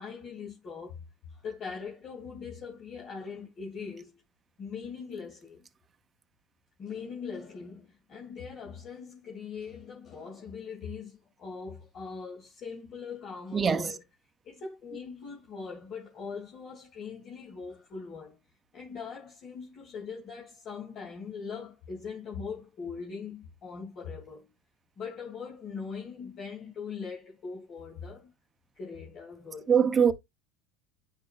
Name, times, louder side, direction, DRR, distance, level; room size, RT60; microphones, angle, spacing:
voice 1, 0.0-4.2 4.6-5.7 6.8-14.0 14.4-18.4 18.7-24.5 25.0-28.3 28.7-29.7, left 5 dB, 45° left, 2.5 m, -41 dB
voice 2, 13.5-13.9 29.7-30.1, right 7 dB, 25° right, 0.7 m, -22 dB
9.7 x 5.5 x 2.5 m
hypercardioid pair, 85°, 0 cm